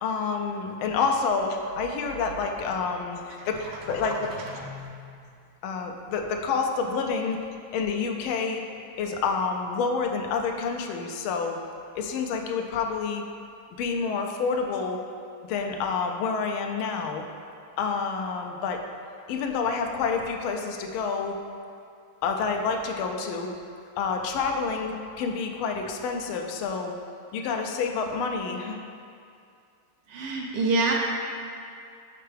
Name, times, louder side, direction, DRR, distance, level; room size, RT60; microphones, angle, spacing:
voice 1, 0.0-4.7 5.6-7.4 7.7-8.6 9.0-11.6 12.0-13.2 13.8-15.0 15.5-17.2 17.8-18.8 19.3-21.3 22.2-23.5 24.0-26.9 27.3-28.8, left 5 dB, 80° left, 3 dB, 1.3 m, -28 dB
voice 2, 4.4-4.9 30.1-30.9, right 3 dB, 75° right, -1 dB, 1.1 m, -27 dB
6.7 x 4.4 x 3.3 m, 2.4 s
omnidirectional pair, 2.3 m